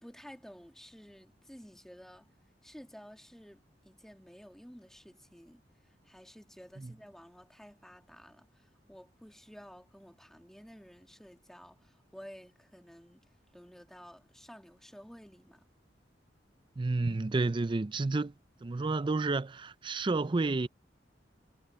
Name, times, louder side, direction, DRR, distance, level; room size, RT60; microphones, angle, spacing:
voice 1, 0.0-2.3 2.6-13.3 13.5-15.7, equal, 5° left, 2.2 m, -53 dB
voice 2, 16.8-18.3 18.6-20.7, right 3 dB, 25° right, 0.4 m, -30 dB
head